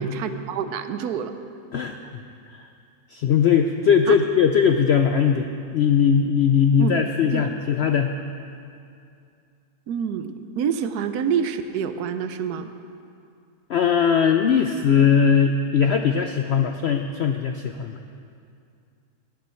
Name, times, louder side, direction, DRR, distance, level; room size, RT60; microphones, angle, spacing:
voice 1, 0.0-1.3 4.1-4.2 6.8-7.0 7.3-7.5 9.9-12.7, right 7 dB, 75° right, 10 dB, 1.2 m, -27 dB
voice 2, 3.1-8.1 13.7-17.9, left 7 dB, 80° left, 6 dB, 0.5 m, -20 dB
18.0 x 9.2 x 4.4 m, 2.5 s
omnidirectional pair, 1.7 m